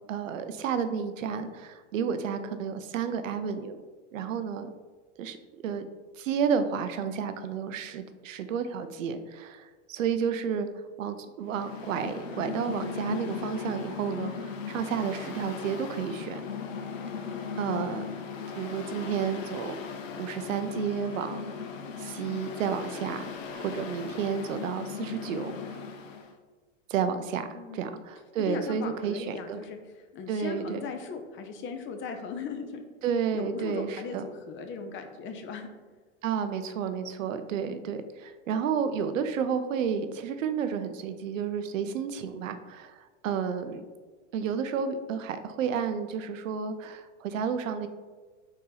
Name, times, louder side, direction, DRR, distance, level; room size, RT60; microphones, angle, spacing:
voice 1, 0.1-3.8 4.1-4.7 5.2-5.4 5.6-5.9 6.2-10.7 11.0-16.4 17.6-18.0 18.6-19.8 20.2-21.5 22.0-25.5 26.9-27.5 27.7-29.6 30.3-30.8 33.0-34.2 36.2-43.8 44.3-47.9, right 7 dB, 90° right, 10 dB, 0.5 m, -31 dB
Mechanical fan, 11.5-26.3, left 6 dB, 90° left, 0.6 m, -38 dB
voice 2, 27.5-27.9 28.4-32.8 33.3-35.7, left 5 dB, 30° left, 6 dB, 0.5 m, -38 dB
4.1 x 2.7 x 3.8 m, 1.4 s
hypercardioid pair, 100°, 38 cm